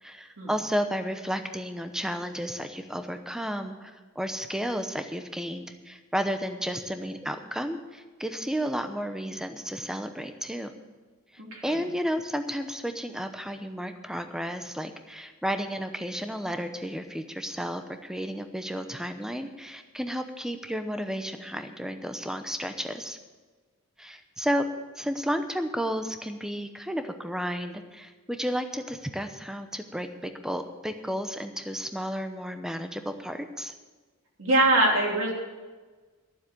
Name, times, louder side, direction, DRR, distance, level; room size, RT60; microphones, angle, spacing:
voice 1, 0.0-10.7 11.6-23.2 24.0-24.7 25.0-33.7, equal, 5° right, 8 dB, 0.8 m, -32 dB
voice 2, 11.4-11.8 34.4-35.3, right 1 dB, 65° right, -2 dB, 3.2 m, -23 dB
12.0 x 7.3 x 8.6 m, 1.3 s
head